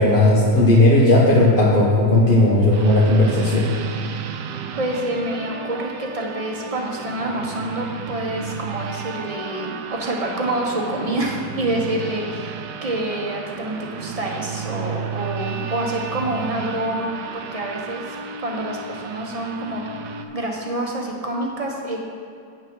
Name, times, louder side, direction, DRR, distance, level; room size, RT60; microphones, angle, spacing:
voice 1, 0.0-3.7, left 1 dB, 35° left, -5 dB, 1.1 m, -15 dB
sound 1, 2.7-20.2, right 6 dB, 90° right, 1.3 m, -33 dB
voice 2, 4.8-19.8 20.1-22.0, right 1 dB, 25° right, 0 dB, 1.2 m, -27 dB
9.1 x 6.5 x 6.3 m, 2.5 s
omnidirectional pair, 1.8 m